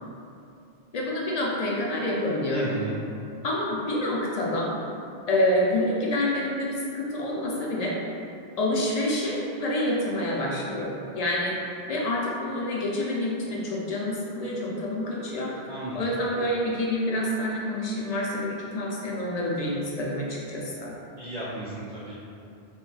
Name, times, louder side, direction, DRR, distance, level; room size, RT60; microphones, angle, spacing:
voice 1, 0.9-2.6 3.4-4.7 5.3-8.0 8.6-11.6 11.9-15.6 15.9-20.9, left 1 dB, 50° left, -4 dB, 0.5 m, -27 dB
voice 2, 2.5-3.0 15.7-16.2 21.2-22.2, right 1 dB, 45° right, -7 dB, 0.6 m, -34 dB
2.6 x 2.3 x 3.8 m, 2.6 s
omnidirectional pair, 1.1 m